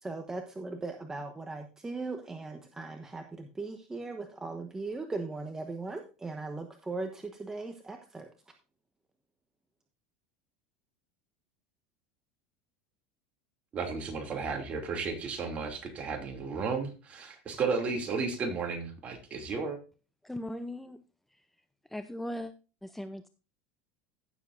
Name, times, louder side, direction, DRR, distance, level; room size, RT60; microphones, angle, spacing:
voice 1, 0.0-8.3, right 3 dB, 15° right, 5 dB, 1.1 m, -38 dB
voice 2, 13.7-19.8, right 4 dB, 35° right, 4 dB, 2.7 m, -33 dB
voice 3, 20.2-21.0 21.3-21.4 21.9-22.5 22.8-23.3, left 1 dB, 5° left, 10 dB, 0.6 m, -38 dB
15.5 x 7.2 x 2.6 m, 0.33 s
supercardioid pair, 105°, 4 cm